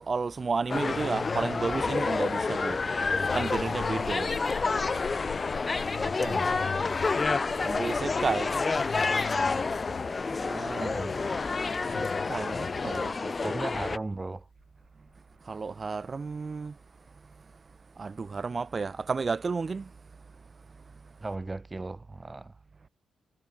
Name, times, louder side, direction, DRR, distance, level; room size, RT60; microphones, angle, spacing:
voice 1, 0.0-2.8 3.3-4.3 7.6-8.5 10.4-10.9 11.8-13.5 15.5-16.7 18.0-19.9, right 4 dB, 40° right, 0.9 m, -32 dB
sound 1, 0.7-13.1, left 6 dB, 55° left, 0.7 m, -39 dB
sound 2, 0.7-14.0, left 4 dB, 35° left, 1.3 m, -29 dB
sound 3, 2.8-16.1, left 9 dB, 75° left, 2.2 m, -48 dB
voice 2, 5.9-6.7 10.8-11.2 12.8-13.0 13.4-14.5 21.2-22.6, right 2 dB, 25° right, 2.8 m, -37 dB
supercardioid pair, 60°, 0 cm